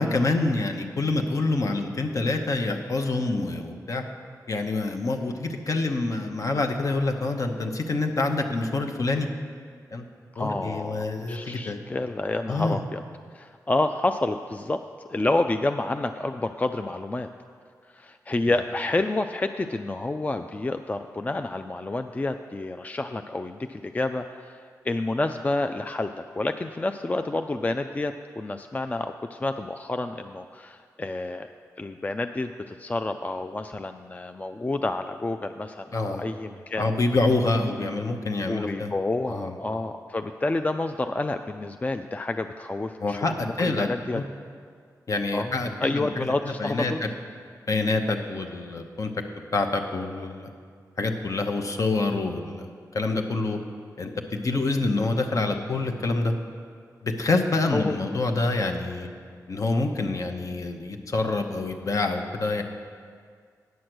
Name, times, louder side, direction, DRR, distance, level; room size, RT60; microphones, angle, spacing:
voice 1, 0.0-4.0 4.5-9.3 9.9-10.1 10.4-11.8 12.5-12.8 35.9-36.2 36.8-38.9 39.3-39.5 43.0-44.2 45.1-46.9 47.7-49.1 49.5-50.5 51.0-53.6 54.0-56.3 57.0-59.1 59.5-62.6, left 3 dB, 55° left, 4 dB, 0.9 m, -26 dB
voice 2, 10.3-13.0 13.3-14.8 15.1-17.3 17.9-31.5 31.8-36.9 38.5-44.2 45.3-47.0 57.7-57.9, left 2 dB, 25° left, 7 dB, 0.3 m, -29 dB
9.3 x 6.4 x 6.1 m, 2.1 s
cardioid pair, 55°, 7 cm